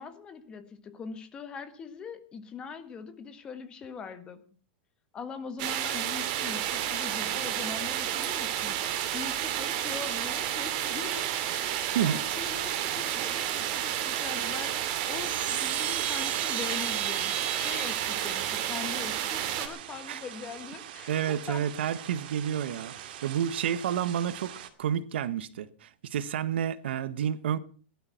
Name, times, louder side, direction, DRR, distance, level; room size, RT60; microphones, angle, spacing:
voice 1, 0.0-4.4 5.1-8.8 9.1-11.3 11.5-21.7, left 6 dB, 15° left, 1.5 m, -42 dB
sound 1, 5.6-19.7, right 11 dB, 40° right, 2.6 m, -31 dB
sound 2, 12.4-24.7, right 11 dB, 60° right, 2.2 m, -44 dB
Chime, 14.9-19.6, right 10 dB, 25° right, 1.6 m, -36 dB
voice 2, 21.1-27.6, right 9 dB, 90° right, 1.3 m, -30 dB
17.5 x 12.0 x 5.7 m
supercardioid pair, 175°, 6 cm